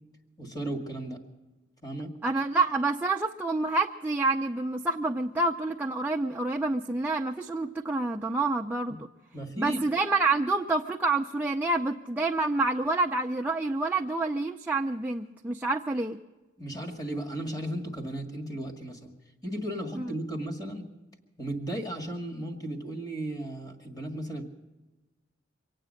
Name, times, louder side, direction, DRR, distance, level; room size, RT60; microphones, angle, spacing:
voice 1, 0.4-1.2 1.8-2.1 9.3-9.8 16.6-19.1 19.4-20.9 21.4-24.4, right 1 dB, 20° left, 3 dB, 1.8 m, -35 dB
voice 2, 2.2-9.0 9.6-16.2 20.0-20.1, right 3 dB, 10° right, 1 dB, 0.5 m, -28 dB
24.0 x 9.0 x 6.4 m, 1.2 s
head